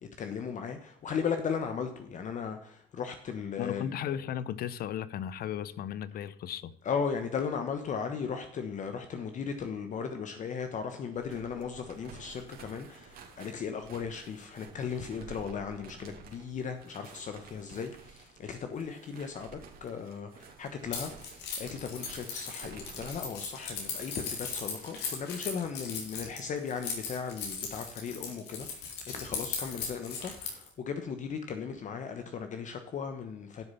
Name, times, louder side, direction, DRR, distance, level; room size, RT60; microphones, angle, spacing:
voice 1, 0.2-3.9 6.8-33.7, left 6 dB, 45° left, 1.2 m, -37 dB
voice 2, 3.6-6.7, left 10 dB, 60° left, 0.8 m, -35 dB
sound 1, 11.1-25.3, right 5 dB, 65° right, 2.8 m, -52 dB
Keys jangling, 20.9-30.7, left 5 dB, 80° left, 4.1 m, -38 dB
12.0 x 6.7 x 5.7 m
cardioid pair, 110°, 17 cm